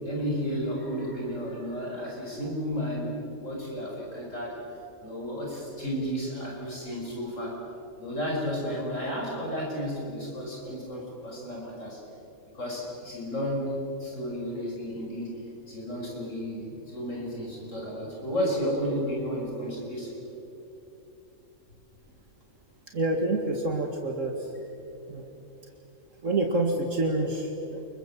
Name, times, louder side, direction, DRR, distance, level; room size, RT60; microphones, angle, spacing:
voice 1, 0.0-4.6 5.0-7.6 8.0-12.0 12.5-13.7 14.0-15.4 15.7-20.1, equal, 65° left, -2 dB, 6.4 m, -32 dB
voice 2, 22.9-24.5 25.1-25.3 26.2-27.9, right 2 dB, 65° right, 2 dB, 2.4 m, -27 dB
29.5 x 23.0 x 7.5 m, 3.0 s
omnidirectional pair, 1.4 m